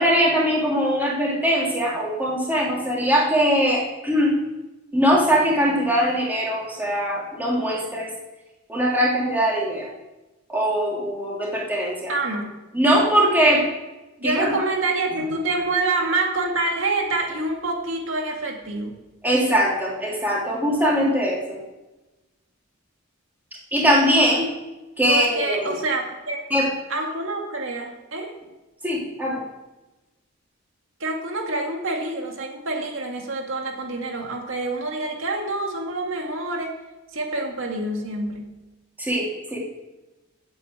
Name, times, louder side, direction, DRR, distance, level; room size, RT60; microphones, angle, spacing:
voice 1, 0.0-4.3 4.9-8.1 8.7-9.9 10.5-12.1 12.7-13.6 14.2-14.6 19.2-21.6 23.7-24.5 25.0-25.8 26.5-26.7 28.8-29.4 39.0-39.6, equal, 10° right, -4 dB, 3.2 m, -21 dB
voice 2, 12.1-12.6 14.2-19.0 25.1-26.4 26.9-28.4 31.0-36.7 37.1-38.6, right 2 dB, 80° right, 2 dB, 2.1 m, -27 dB
8.5 x 8.1 x 7.9 m, 1.1 s
head